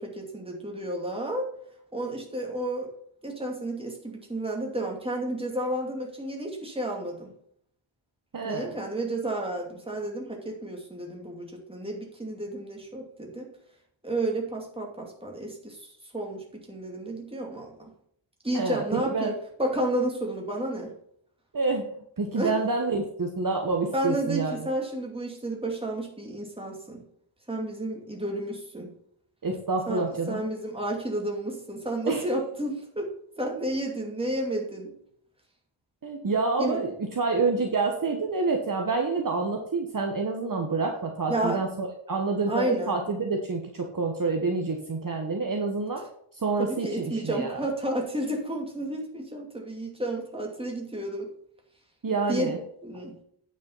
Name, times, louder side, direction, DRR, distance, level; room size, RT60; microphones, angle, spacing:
voice 1, 0.0-1.5 1.9-2.9 3.2-7.3 8.4-13.5 14.0-15.8 16.1-17.7 18.4-19.3 19.6-20.9 22.4-22.6 23.9-27.0 27.5-28.9 29.9-33.1 33.4-34.9 36.6-36.8 41.3-41.6 42.5-43.0 46.6-51.3 52.3-52.5 52.8-53.2, right 1 dB, 10° right, 0 dB, 2.6 m, -31 dB
voice 2, 8.3-8.8 18.5-19.3 21.5-21.9 22.2-24.6 29.4-30.4 32.1-32.2 36.0-46.0 46.3-47.6 52.0-52.6, right 3 dB, 40° right, 2 dB, 1.3 m, -28 dB
9.2 x 5.9 x 5.6 m, 0.67 s
wide cardioid pair, 115°, 49 cm